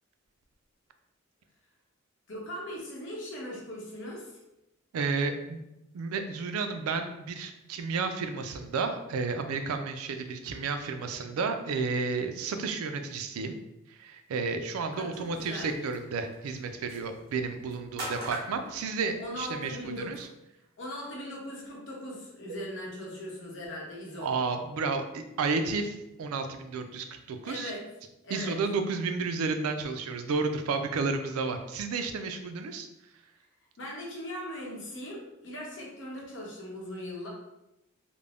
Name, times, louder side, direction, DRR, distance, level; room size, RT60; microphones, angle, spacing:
voice 1, 2.3-4.4 14.9-15.8 19.2-20.1 20.8-24.3 27.4-27.9 28.2-28.6 33.8-37.3, left 1 dB, 60° left, -3 dB, 0.8 m, -39 dB
voice 2, 4.9-5.6 5.9-13.6 13.9-20.3 22.5-22.6 24.2-27.7 28.3-32.9, right 4 dB, 90° right, 7 dB, 0.3 m, -32 dB
sound 1, 15.1-20.2, right 1 dB, 45° right, 0.8 m, -44 dB
2.4 x 2.0 x 3.3 m, 0.89 s
head